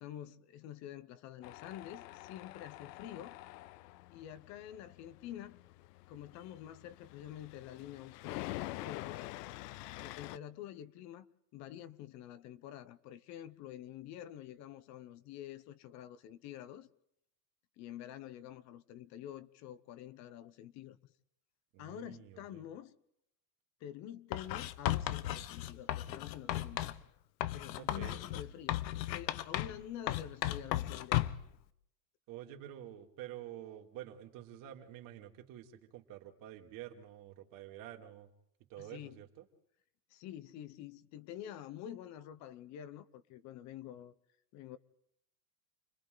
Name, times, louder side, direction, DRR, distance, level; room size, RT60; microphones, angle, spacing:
voice 1, 0.0-3.4 4.1-5.6 6.1-9.3 10.0-11.3 11.5-16.9 17.8-21.0 21.8-23.0 23.8-26.8 27.5-31.2 38.8-39.2 40.1-44.1 44.5-44.8, left 11 dB, 35° left, 0.8 m, -48 dB
Tools, 1.4-10.4, left 18 dB, 70° left, 0.7 m, -47 dB
voice 2, 21.7-22.6 27.8-28.2 32.3-38.3 38.7-39.5, right 12 dB, 40° right, 2.7 m, -49 dB
Writing, 24.3-27.0 27.4-29.8 30.1-31.5, left 14 dB, 85° left, 1.2 m, -35 dB
29.5 x 22.0 x 4.0 m
supercardioid pair, 155°, 50 cm